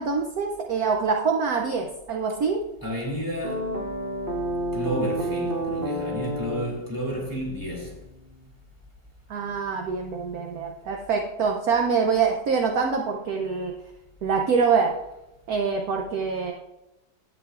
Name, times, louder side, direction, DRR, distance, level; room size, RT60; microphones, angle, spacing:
voice 1, 0.0-2.6 9.3-13.7 14.2-15.0 15.5-16.5, right 5 dB, 65° right, 1.1 m, -25 dB
voice 2, 2.8-3.8 4.7-7.9, equal, 10° right, 2.3 m, -31 dB
sound 1, 3.4-8.5, right 1 dB, 40° right, 0.9 m, -31 dB
11.5 x 8.1 x 2.4 m
omnidirectional pair, 1.9 m